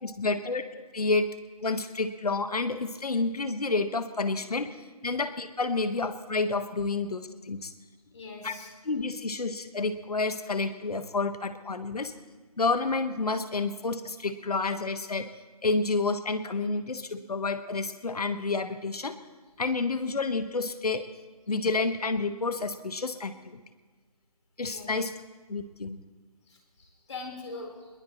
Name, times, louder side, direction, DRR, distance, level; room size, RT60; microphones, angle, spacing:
voice 1, 0.0-1.3 1.6-4.8 5.0-7.7 8.4-8.5 8.8-12.1 12.6-15.3 15.6-19.2 19.6-21.0 21.5-23.6 24.6-25.1 25.5-26.0, left 3 dB, 75° left, 10 dB, 1.4 m, -29 dB
voice 2, 8.1-8.7 24.6-24.9 26.5-27.9, left 3 dB, 50° left, 0 dB, 4.3 m, -42 dB
21.5 x 20.5 x 3.2 m, 1.3 s
figure-of-eight pair, 170°, 20 cm